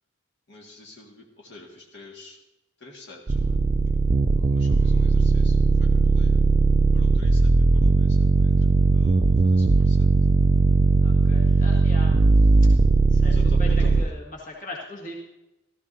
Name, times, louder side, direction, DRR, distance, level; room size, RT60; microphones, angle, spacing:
voice 1, 0.5-2.4 2.8-3.6 4.5-6.4 6.9-8.7 8.9-10.1 11.4-11.6 13.2-14.1, left 2 dB, 55° left, -1 dB, 1.8 m, -46 dB
sound 1, 3.3-14.0, right 3 dB, 35° right, 0.3 m, -18 dB
sound 2, 4.4-7.6, left 1 dB, 5° left, 1.1 m, -56 dB
voice 2, 11.0-12.2 13.1-15.2, left 1 dB, 40° left, -3 dB, 1.8 m, -39 dB
17.0 x 13.0 x 2.7 m, 0.97 s
head